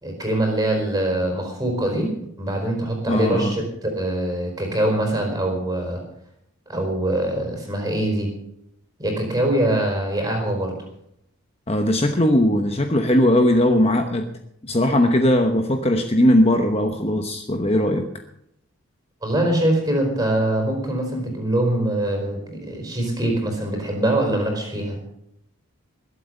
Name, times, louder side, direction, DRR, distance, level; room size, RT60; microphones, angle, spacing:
voice 1, 0.0-2.1 2.4-6.0 6.7-8.3 9.0-10.7 19.2-25.0, right 1 dB, 15° right, 2 dB, 4.7 m, -23 dB
voice 2, 3.1-3.6 11.7-14.3 14.6-18.1, left 1 dB, 25° left, 5 dB, 1.0 m, -19 dB
21.5 x 8.2 x 6.6 m, 0.76 s
head